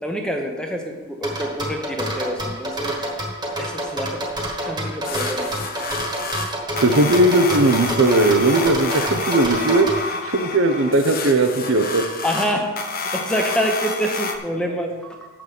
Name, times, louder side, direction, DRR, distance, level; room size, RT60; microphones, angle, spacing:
voice 1, 0.0-3.0 3.6-4.2 4.6-5.5 12.2-15.2, equal, 5° left, 2 dB, 0.9 m, -26 dB
sound 1, 1.2-10.0, equal, 20° right, 1.5 m, -27 dB
sound 2, 5.0-14.4, left 3 dB, 45° left, 0.8 m, -29 dB
voice 2, 6.8-12.0, right 2 dB, 75° right, 7 dB, 0.8 m, -18 dB
7.8 x 6.0 x 7.0 m, 1.3 s
head